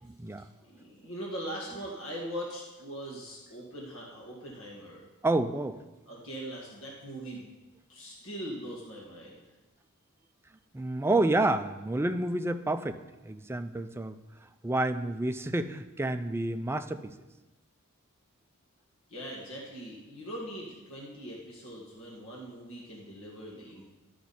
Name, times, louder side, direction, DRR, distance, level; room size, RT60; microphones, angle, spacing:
voice 1, 0.0-0.5 5.2-5.8 10.7-14.2 14.6-17.2, right 2 dB, 10° right, 10 dB, 0.3 m, -29 dB
voice 2, 0.6-5.1 6.1-7.5 7.9-9.4 19.1-23.9, equal, 65° left, -3 dB, 1.9 m, -41 dB
12.0 x 5.9 x 4.2 m, 1.1 s
head